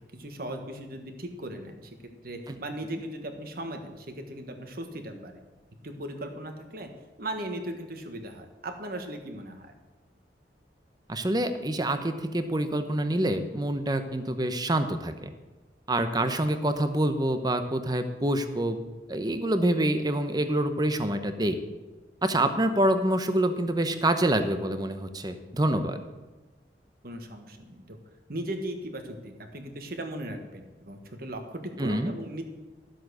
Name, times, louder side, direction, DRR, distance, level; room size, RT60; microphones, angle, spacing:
voice 1, 0.1-5.4 5.8-6.9 7.2-9.7 27.0-28.0 28.3-32.4, right 1 dB, 55° right, 5 dB, 1.6 m, -38 dB
voice 2, 11.1-15.3 15.9-18.8 19.1-21.6 22.2-26.0 31.8-32.1, right 1 dB, 25° right, 9 dB, 0.9 m, -26 dB
13.0 x 7.7 x 6.3 m, 1.2 s
head